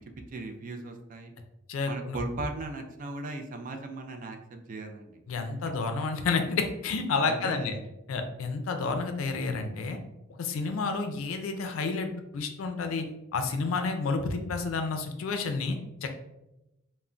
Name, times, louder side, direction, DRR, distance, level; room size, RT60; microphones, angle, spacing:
voice 1, 0.3-1.3 1.9-5.2 7.3-7.8, right 2 dB, 40° right, 5 dB, 0.3 m, -37 dB
voice 2, 1.7-2.2 5.3-7.7 8.1-10.0 10.4-12.1 12.3-13.0 13.3-16.3, left 4 dB, 80° left, 6 dB, 0.4 m, -30 dB
2.2 x 2.1 x 3.7 m, 0.93 s
head